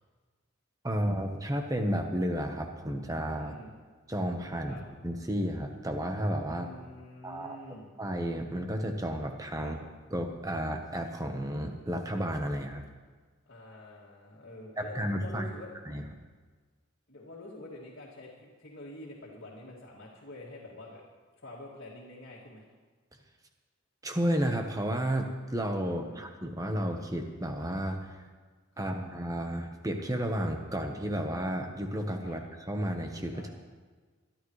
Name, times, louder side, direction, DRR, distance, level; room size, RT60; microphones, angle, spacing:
voice 1, 0.8-3.6 4.1-4.8 5.0-6.7 7.2-7.6 8.0-9.8 10.1-12.8 14.8-15.4 15.9-16.0 24.0-28.1 28.8-33.5, equal, 15° right, 4 dB, 1.1 m, -32 dB
voice 2, 3.4-3.8 4.7-4.8 6.5-7.9 9.6-9.7 13.5-15.7 17.1-21.0 21.3-22.7 25.9-26.3 28.7-28.9 32.2-32.4 33.3-33.5, left 1 dB, 55° left, -6 dB, 2.4 m, -47 dB
24.0 x 12.0 x 3.3 m, 1.4 s
head